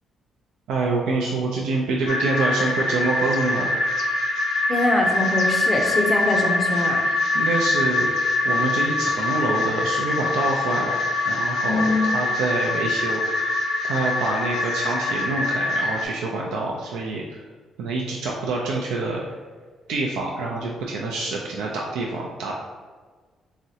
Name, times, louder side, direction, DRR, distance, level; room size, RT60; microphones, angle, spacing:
voice 1, 0.7-3.7 7.1-8.1 8.4-13.6 13.8-17.4 17.8-19.2 19.9-22.5, right 3 dB, 90° right, -2 dB, 0.3 m, -26 dB
sound 1, 2.1-16.1, left 2 dB, 80° left, 0.5 m, -24 dB
voice 2, 4.7-7.0 11.7-12.1, left 2 dB, 30° left, 1 dB, 0.5 m, -23 dB
3.6 x 2.0 x 2.7 m, 1.5 s
cardioid pair, 90°, 0 cm